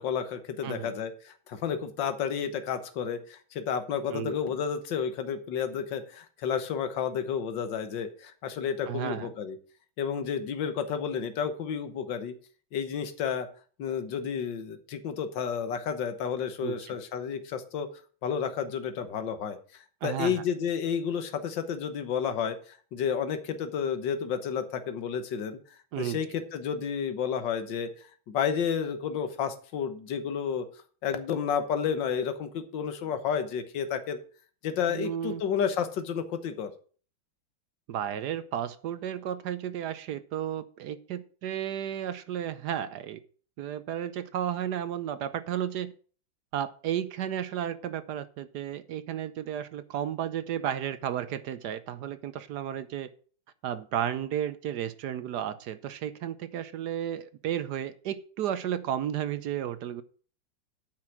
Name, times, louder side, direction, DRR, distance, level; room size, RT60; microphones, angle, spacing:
voice 1, 0.0-9.6 10.0-12.3 12.7-13.5 13.8-17.9 18.2-25.6 26.0-27.9 28.3-30.6 31.0-34.2 34.6-36.7, left 7 dB, 65° left, 1.8 m, -31 dB
voice 2, 8.9-9.3 16.6-17.0 20.0-20.4 25.9-26.2 34.9-35.4 37.9-43.2 43.6-45.9 46.5-53.1 53.6-60.0, right 10 dB, 65° right, 1.1 m, -33 dB
8.8 x 5.7 x 7.5 m
omnidirectional pair, 2.2 m